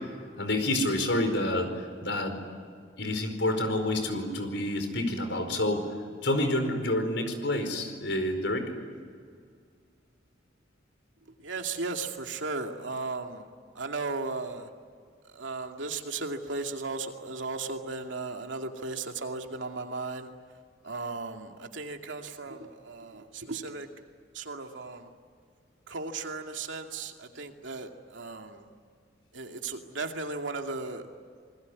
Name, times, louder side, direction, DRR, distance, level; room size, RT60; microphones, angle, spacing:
voice 1, 0.4-2.4 3.0-5.8 6.2-8.7, left 1 dB, 70° left, 6 dB, 4.8 m, -28 dB
voice 2, 11.4-13.5 13.7-14.7 15.2-20.3 20.8-23.9 24.3-25.1 25.9-28.6 29.3-31.1, right 3 dB, 85° right, 4 dB, 2.5 m, -36 dB
27.5 x 21.0 x 9.8 m, 2.1 s
head